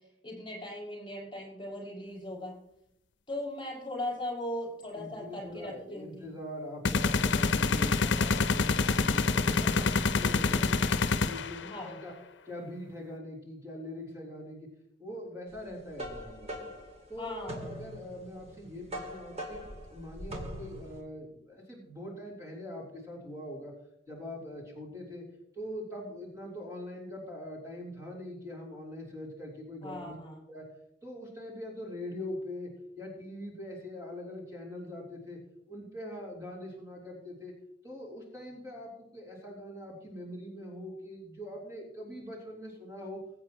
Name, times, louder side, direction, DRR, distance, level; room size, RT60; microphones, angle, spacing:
voice 1, 0.2-2.6 3.3-6.2 11.7-12.0 17.2-17.6 29.8-30.5, left 1 dB, 25° left, -4 dB, 6.0 m, -38 dB
voice 2, 4.9-12.1 12.4-14.7 15.0-16.7 17.1-23.7 24.1-25.2 25.5-30.1 30.5-30.7 31.0-35.4 35.7-37.5 37.8-43.2, left 1 dB, 20° right, -4 dB, 3.7 m, -42 dB
sound 1, 6.9-11.7, left 4 dB, 80° left, 0.7 m, -27 dB
sound 2, 15.6-21.0, equal, 35° right, 2.3 m, -42 dB
22.0 x 8.7 x 3.1 m, 0.78 s
head